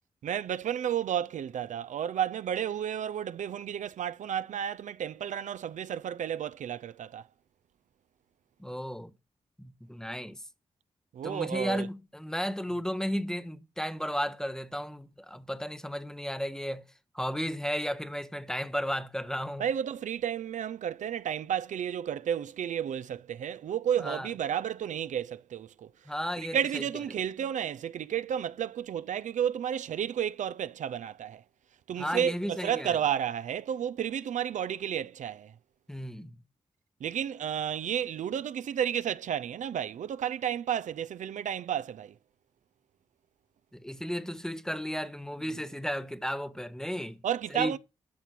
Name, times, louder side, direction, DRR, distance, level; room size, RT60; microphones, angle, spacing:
voice 1, 0.2-7.3 11.1-11.9 19.6-25.9 26.5-31.4 31.9-35.5 37.0-42.1 47.2-47.8, right 9 dB, 75° right, 0.5 m, -32 dB
voice 2, 8.6-9.1 9.6-10.4 11.2-16.8 17.1-19.7 24.0-24.3 26.0-26.8 32.0-33.0 35.9-36.4 43.7-47.2 47.5-47.8, equal, 5° left, 1.3 m, -34 dB
12.5 x 6.0 x 5.9 m
supercardioid pair, 40°, 13 cm